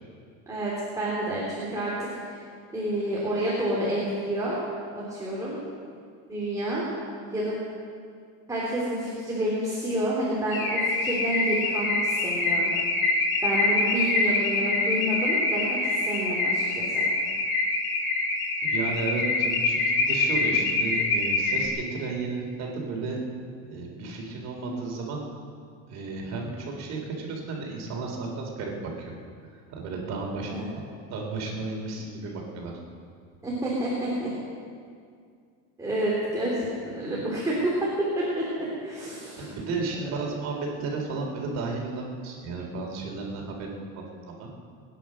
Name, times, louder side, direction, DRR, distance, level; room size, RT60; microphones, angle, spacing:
voice 1, 0.5-2.4 2.7-4.6 5.1-5.6 6.3-6.8 7.3-7.6 8.5-12.7 13.4-17.1 30.5-30.6 33.4-34.3 35.8-39.5 40.0-40.1, right 1 dB, 10° right, -7 dB, 3.4 m, -29 dB
Car / Alarm, 10.5-21.7, left 3 dB, 35° left, 2.4 m, -25 dB
voice 2, 18.6-23.2 23.7-25.2 25.9-29.1 29.4-30.8 31.1-32.7 39.4-44.5, right 3 dB, 50° right, 0 dB, 3.7 m, -33 dB
22.0 x 10.0 x 6.4 m, 2.2 s
cardioid pair, 145°, 35 cm